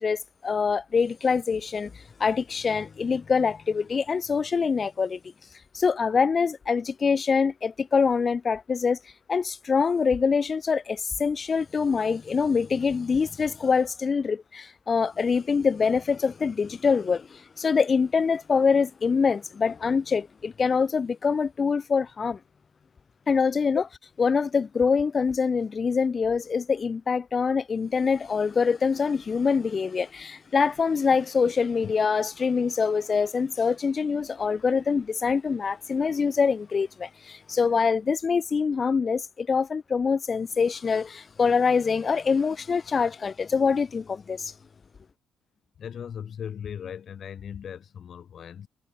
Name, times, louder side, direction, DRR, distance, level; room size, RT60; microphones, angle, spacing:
voice 1, 0.0-5.2 5.7-9.0 9.3-22.4 23.3-23.8 24.2-44.5, left 5 dB, 40° left, 0.4 m, -24 dB
voice 2, 45.8-48.7, left 8 dB, 60° left, 1.1 m, -37 dB
cardioid pair, 90°, 0 cm